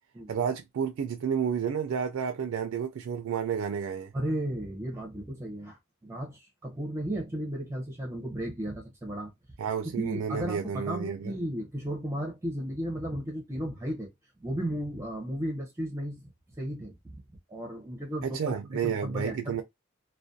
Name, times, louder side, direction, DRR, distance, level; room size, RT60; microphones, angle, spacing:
voice 1, 0.3-4.1 9.6-11.3 18.2-19.6, right 7 dB, 70° right, 0.3 m, -31 dB
voice 2, 4.1-9.3 10.0-14.1 14.4-16.3 16.6-16.9 17.5-19.6, right 1 dB, 15° right, 0.5 m, -34 dB
2.4 x 2.2 x 2.6 m
head